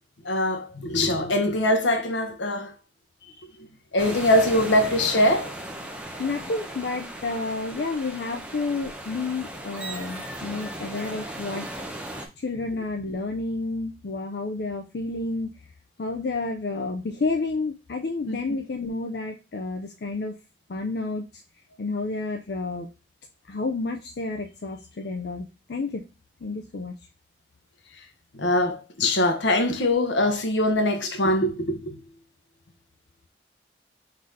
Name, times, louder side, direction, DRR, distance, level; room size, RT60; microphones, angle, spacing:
voice 1, 0.2-2.7 3.9-5.5 18.3-18.4 28.3-32.0, left 1 dB, 80° left, 0.9 m, -22 dB
sound 1, 4.0-12.3, right 1 dB, 5° right, 0.6 m, -37 dB
voice 2, 6.2-11.7 12.4-15.5 16.0-20.4 20.7-21.2 21.8-22.9 23.5-26.0 26.4-26.9, left 3 dB, 60° left, 0.5 m, -30 dB
3.9 x 2.8 x 4.8 m
head